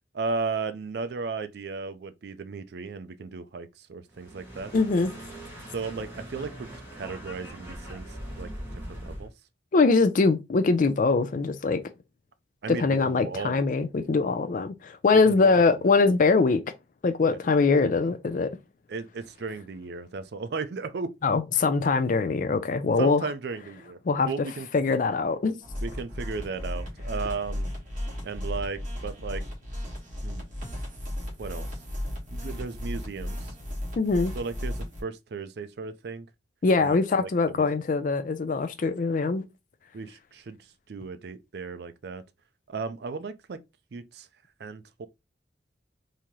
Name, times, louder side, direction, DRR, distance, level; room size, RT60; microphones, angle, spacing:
voice 1, 0.1-4.7 5.7-8.1 8.4-8.5 8.9-9.3 12.6-13.6 15.1-15.6 18.9-21.1 23.0-24.0 24.2-24.7 25.8-27.7 28.2-29.4 30.2-30.4 31.4-31.7 32.3-33.5 34.4-36.3 36.8-37.7 39.9-40.6 40.9-42.2 42.7-43.6 43.9-44.3 44.6-45.1, right 4 dB, 65° right, 0.4 m, -35 dB
sound 1, 4.1-9.3, equal, 15° right, 1.5 m, -41 dB
voice 2, 4.7-5.1 9.7-11.8 12.7-16.6 17.0-18.5 21.2-23.2 24.1-24.3 24.7-25.5 34.0-34.3 36.6-39.4, left 4 dB, 45° left, 0.4 m, -22 dB
sound 2, 25.6-35.0, left 1 dB, 45° right, 1.5 m, -35 dB
3.7 x 2.8 x 3.0 m
head